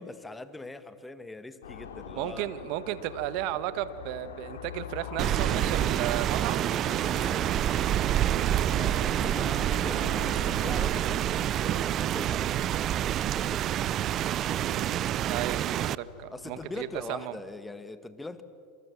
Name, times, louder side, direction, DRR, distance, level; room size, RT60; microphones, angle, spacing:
voice 1, 0.0-2.5 8.6-13.6 15.6-16.0 16.3-18.4, left 2 dB, 10° left, 11 dB, 1.9 m, -42 dB
sound 1, 1.6-17.1, left 6 dB, 75° left, 2.9 m, -44 dB
voice 2, 2.1-6.6 14.4-17.3, right 13 dB, 55° right, 14 dB, 1.6 m, -34 dB
sound 2, 5.0-11.8, left 7 dB, 55° left, 4.8 m, -50 dB
Rain, 5.2-15.9, right 12 dB, 40° right, 0.5 m, -27 dB
27.5 x 27.0 x 7.3 m, 2.4 s
hypercardioid pair, 85°, 0 cm